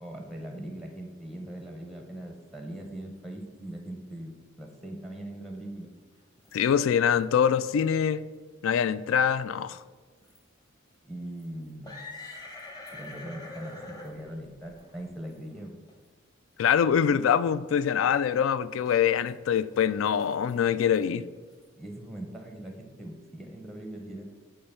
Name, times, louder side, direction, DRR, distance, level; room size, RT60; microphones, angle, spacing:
voice 1, 0.0-5.9 11.0-11.9 12.9-15.8 21.8-24.2, right 1 dB, ahead, 0.6 m, -41 dB
sound 1, 6.1-6.6 7.0-7.2 7.8-7.9 8.3-8.4 8.9-9.3 10.2-10.4 10.9-11.0 11.4-15.6 15.9-16.0 16.7-16.8 18.8-19.3 19.6-21.7, left 2 dB, 20° left, 1.0 m, -46 dB
voice 2, 6.5-8.2 8.6-9.8 16.6-21.2, left 8 dB, 75° left, 0.3 m, -24 dB
5.5 x 4.3 x 5.6 m
head